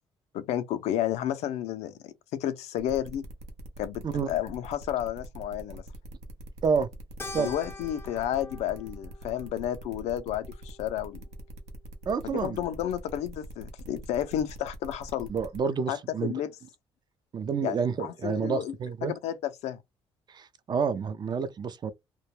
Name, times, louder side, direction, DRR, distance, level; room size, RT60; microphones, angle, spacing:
voice 1, 0.3-3.2 3.8-5.8 7.3-11.2 12.2-15.3 15.9-16.5 17.6-18.7 19.0-19.8, left 11 dB, 80° left, 0.4 m, -31 dB
sound 1, 2.8-15.6, right 1 dB, 85° right, 0.7 m, -44 dB
Keyboard (musical), 7.2-11.8, left 3 dB, 20° left, 0.4 m, -46 dB
voice 2, 12.1-12.6 15.3-16.3 17.3-19.1 20.3-21.9, right 5 dB, 40° right, 0.4 m, -29 dB
2.2 x 2.1 x 3.0 m
cardioid pair, 80°, 11 cm